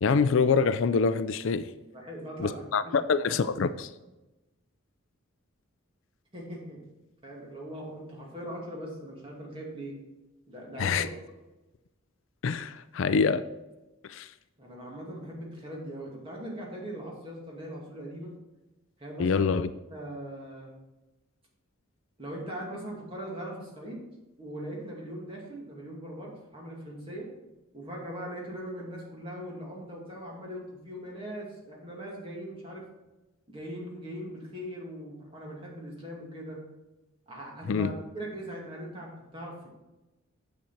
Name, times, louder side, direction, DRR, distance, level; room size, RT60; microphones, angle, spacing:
voice 1, 0.0-1.7 2.4-3.9 10.8-11.1 12.4-13.4 14.1-14.3 19.2-19.7 37.7-37.9, left 5 dB, 60° left, 13 dB, 0.4 m, -25 dB
voice 2, 1.9-3.3 6.3-6.8 7.2-9.9 10.5-11.1 14.6-18.3 19.0-19.4 19.9-20.7 22.2-24.0 24.4-27.3 27.7-32.8 33.5-36.6 37.3-39.7, right 1 dB, 25° right, -3 dB, 2.4 m, -40 dB
8.9 x 7.0 x 4.4 m, 1.0 s
head